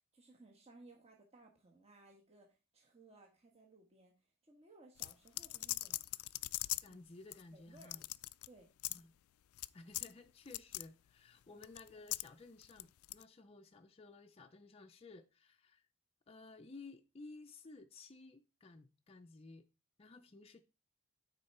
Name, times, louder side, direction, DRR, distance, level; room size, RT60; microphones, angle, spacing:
voice 1, 0.1-6.0 6.9-7.0 7.5-7.9 8.4-8.7 11.5-11.7, right 2 dB, 30° right, 1.4 m, -62 dB
sound 1, 5.0-6.9 7.3-7.4 7.8-8.5 8.8-9.0 9.6-9.7 9.9-10.1 10.5-10.9 11.6-12.3 12.6-13.2, left 19 dB, 90° left, 0.3 m, -40 dB
voice 2, 6.8-8.1 8.9-9.1 9.7-15.9 16.3-19.6 20.0-20.6, left 3 dB, 30° left, 0.5 m, -55 dB
9.6 x 4.4 x 4.3 m
head